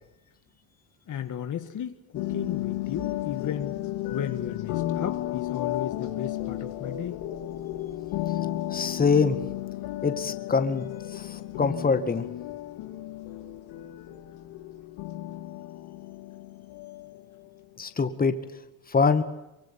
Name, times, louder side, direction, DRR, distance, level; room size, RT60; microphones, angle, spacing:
voice 1, 1.1-3.8 4.1-7.2, left 9 dB, 40° left, 8 dB, 1.8 m, -34 dB
sound 1, 2.1-17.2, left 14 dB, 70° left, 3.3 m, -33 dB
voice 2, 8.7-9.4 10.0-10.9 11.3-12.3 17.8-18.3 18.9-19.2, left 5 dB, 20° left, 9 dB, 2.0 m, -24 dB
24.5 x 23.5 x 8.9 m, 0.92 s
supercardioid pair, 115°, 48 cm